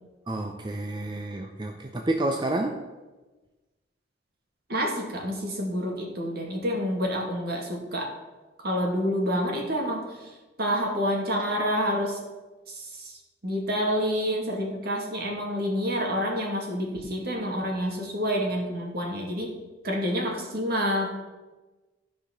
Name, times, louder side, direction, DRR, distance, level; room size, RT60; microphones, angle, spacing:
voice 1, 0.3-2.9, right 2 dB, 25° right, 3 dB, 0.6 m, -29 dB
voice 2, 4.7-8.1 8.6-10.2 10.6-12.2 12.7-13.1 13.4-19.5 19.8-21.1, equal, 55° right, 0 dB, 2.4 m, -28 dB
13.5 x 5.1 x 5.9 m, 1.2 s
head